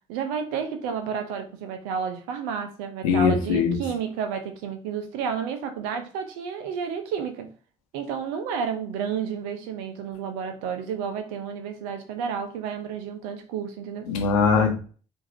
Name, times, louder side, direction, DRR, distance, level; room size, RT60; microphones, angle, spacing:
voice 1, 0.1-7.5 7.9-14.1, right 7 dB, 80° right, 0.6 m, -31 dB
voice 2, 3.0-3.8 14.1-14.8, left 5 dB, 85° left, 0.8 m, -21 dB
4.6 x 2.7 x 2.6 m
hypercardioid pair, 40°, 17 cm